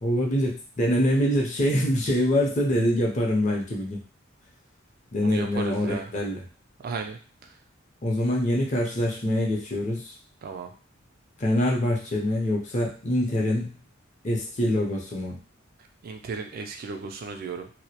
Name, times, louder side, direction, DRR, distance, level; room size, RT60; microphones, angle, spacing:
voice 1, 0.0-4.0 5.1-6.4 8.0-10.1 11.4-13.8 14.2-15.4, left 1 dB, 35° left, -2 dB, 0.6 m, -25 dB
voice 2, 5.2-6.1 6.8-7.2 10.4-10.7 16.0-17.7, right 5 dB, 50° right, 5 dB, 0.3 m, -35 dB
2.2 x 2.0 x 2.8 m, 0.37 s
head